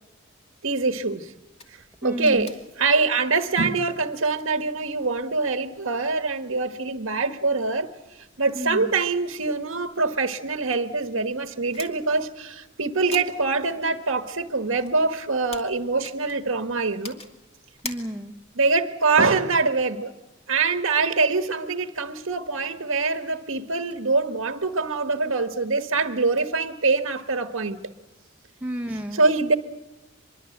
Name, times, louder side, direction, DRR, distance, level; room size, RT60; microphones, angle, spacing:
voice 1, 0.6-1.3 2.0-7.9 8.4-17.2 18.6-20.1 20.5-27.8 29.1-29.5, right 3 dB, 80° right, 1.4 m, -24 dB
sound 1, 1.6-18.6, left 3 dB, 30° left, 2.5 m, -48 dB
voice 2, 2.0-2.5 8.5-8.9 17.8-18.4 28.6-29.2, equal, 10° right, 1.2 m, -31 dB
25.5 x 22.5 x 7.9 m
head